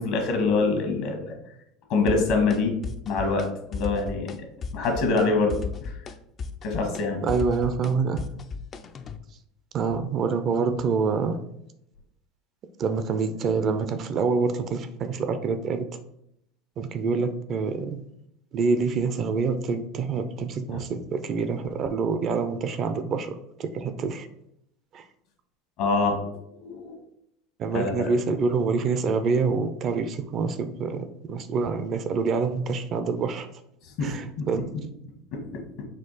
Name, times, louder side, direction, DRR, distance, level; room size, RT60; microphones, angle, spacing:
voice 1, 0.0-1.3 1.9-2.8 3.0-4.3 4.7-6.0 6.6-7.2 20.7-20.8 25.8-26.2 26.6-27.0 27.7-28.1 34.0-34.1 34.4-34.5 34.7-34.8 35.3-35.6, left 3 dB, 65° left, 3 dB, 1.2 m, -25 dB
sound 1, 2.1-2.6 2.8-3.5 3.7-4.4 4.6-5.3 5.5-9.2, left 5 dB, 35° left, 0.3 m, -34 dB
voice 2, 7.2-8.2 9.7-11.4 12.8-15.9 16.8-18.0 18.5-24.3 24.9-25.0 27.6-33.5 34.0-34.6, right 5 dB, 45° right, 9 dB, 0.4 m, -26 dB
4.3 x 2.4 x 3.9 m, 0.76 s
supercardioid pair, 105°, 0 cm